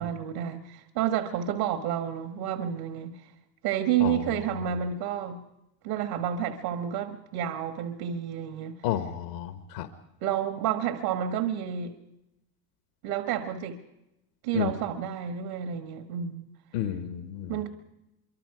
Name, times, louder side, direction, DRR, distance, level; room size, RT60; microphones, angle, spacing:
voice 1, 0.0-3.3 3.6-5.4 5.8-8.8 10.2-11.9 13.0-13.8 14.4-16.4 17.5-17.7, right 9 dB, 80° right, 7 dB, 1.6 m, -30 dB
voice 2, 8.8-9.9 14.5-14.7 16.7-17.6, left 11 dB, 85° left, 8 dB, 1.4 m, -31 dB
25.0 x 24.0 x 4.9 m, 0.91 s
supercardioid pair, 105°, 49 cm